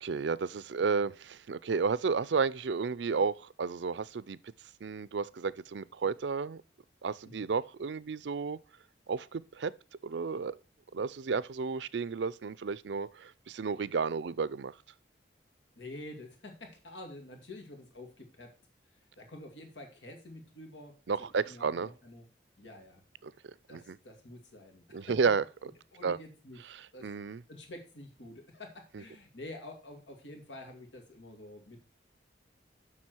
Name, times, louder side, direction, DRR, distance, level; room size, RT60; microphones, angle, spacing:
voice 1, 0.0-4.4 4.8-6.6 7.0-8.6 9.1-9.7 10.0-10.6 10.9-14.7 21.1-21.9 23.2-23.3 23.7-24.0 24.9-25.4 26.0-26.2 26.7-27.4, right 5 dB, 80° right, 0.5 m, -32 dB
voice 2, 15.8-18.5 19.2-20.9 21.5-22.3 22.6-23.0 23.7-25.3 25.9-26.6 26.9-27.1 27.5-31.8, left 1 dB, 90° left, 2.3 m, -48 dB
7.5 x 6.1 x 6.2 m
head